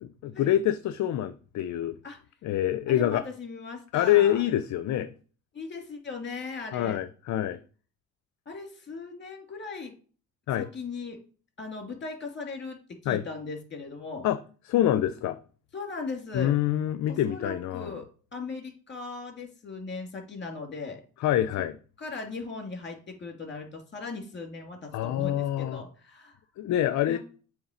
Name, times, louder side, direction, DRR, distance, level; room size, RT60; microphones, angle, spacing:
voice 1, 0.0-2.0 2.4-3.2 3.9-5.1 6.7-7.6 10.5-10.7 13.1-13.2 14.2-14.4 14.7-15.4 16.3-17.9 21.2-21.7 24.9-25.8 26.6-27.2, left 12 dB, 55° left, 0.6 m, -26 dB
voice 2, 2.9-4.4 5.5-7.0 8.5-9.9 10.6-11.2 11.6-12.8 13.0-14.3 15.7-16.5 17.1-18.1 18.3-21.0 22.0-26.4 27.1-27.2, left 4 dB, 30° left, 2.4 m, -38 dB
7.2 x 3.2 x 5.1 m
supercardioid pair, 80°, 34 cm